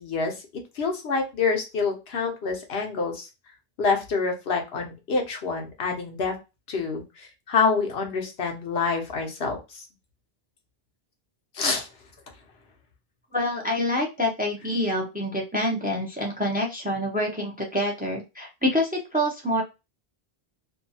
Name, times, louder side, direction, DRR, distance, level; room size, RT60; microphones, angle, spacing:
voice 1, 0.0-3.3 3.8-6.3 6.7-9.8 11.5-11.9, left 4 dB, 80° left, 3 dB, 1.1 m, -27 dB
voice 2, 13.3-19.6, left 1 dB, 10° right, 0 dB, 0.5 m, -26 dB
2.7 x 2.3 x 2.6 m, 0.26 s
omnidirectional pair, 1.0 m